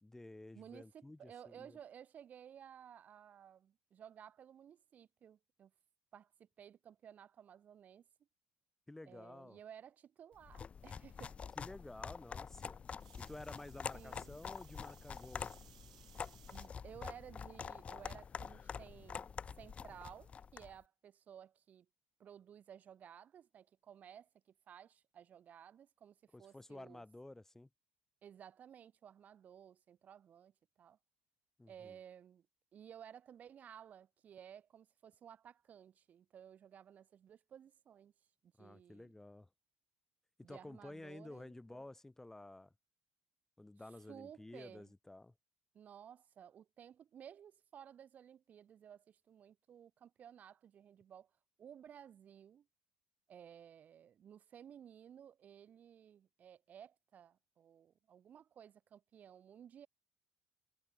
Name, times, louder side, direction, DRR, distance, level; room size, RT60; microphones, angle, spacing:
voice 1, 0.0-1.8 8.9-9.6 11.6-12.8 13.2-15.6 26.3-27.7 31.6-32.0 38.6-39.5 40.4-42.7 43.6-45.3, left 2 dB, 10° left, 2.2 m, -52 dB
voice 2, 0.5-5.7 6.1-8.0 9.0-11.5 13.9-14.4 16.5-19.3 19.6-21.9 22.2-27.0 28.2-30.5 30.8-31.0 31.7-32.5 32.7-38.1 38.4-39.1 40.4-41.8 44.1-44.9 45.7-51.3 51.6-52.7 53.3-59.9, right 9 dB, 45° right, 2.2 m, -56 dB
sound 1, 10.4-20.8, left 6 dB, 35° left, 0.6 m, -47 dB
sound 2, 13.0-16.7 17.4-17.8 19.1-19.2, right 12 dB, 85° right, 2.5 m, -64 dB
hypercardioid pair, 60°, 4 cm